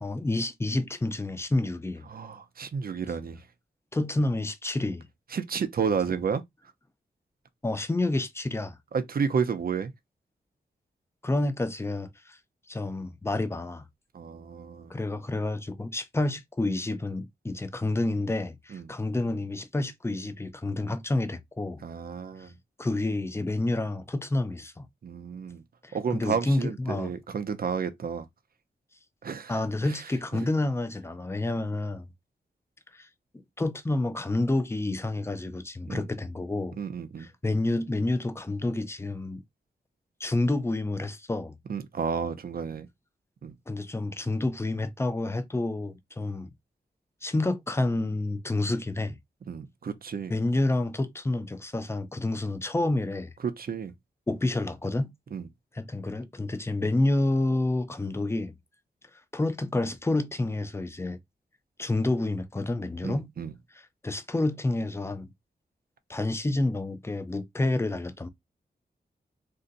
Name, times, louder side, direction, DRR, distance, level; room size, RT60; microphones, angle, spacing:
voice 1, 0.0-2.1 3.9-5.1 7.6-8.8 11.2-12.4 12.7-13.9 14.9-21.8 22.4-22.5 22.8-24.9 25.8-27.1 29.5-32.1 32.9-33.1 33.6-36.8 37.2-39.4 40.2-41.6 43.7-46.5 47.2-49.2 50.3-53.3 54.3-55.1 55.7-58.5 59.3-61.2 61.8-63.3 64.0-65.3 66.1-68.3, left 2 dB, 15° left, 0.5 m, -29 dB
voice 2, 2.1-3.4 5.3-6.4 8.9-9.9 14.1-15.0 18.7-18.9 21.8-22.6 25.0-25.6 25.9-28.3 29.2-29.6 29.9-30.0 35.9-36.1 36.8-37.3 41.7-42.9 43.4-43.5 49.5-50.3 53.4-53.9 55.3-55.5 63.0-63.5, right 6 dB, 60° right, 0.6 m, -31 dB
2.6 x 2.2 x 3.8 m
wide cardioid pair, 85°, 17 cm